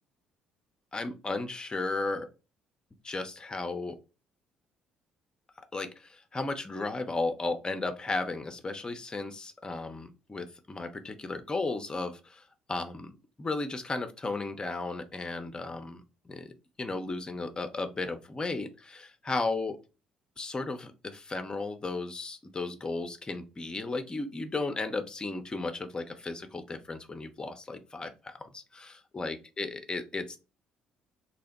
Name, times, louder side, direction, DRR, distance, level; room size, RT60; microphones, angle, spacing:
voice 1, 0.9-2.3 3.0-4.0 5.7-13.1 13.4-16.5 16.8-19.8 20.4-30.4, left 3 dB, 25° left, 7 dB, 0.6 m, -35 dB
2.8 x 2.1 x 4.1 m, 0.30 s
hypercardioid pair, 50°, 4 cm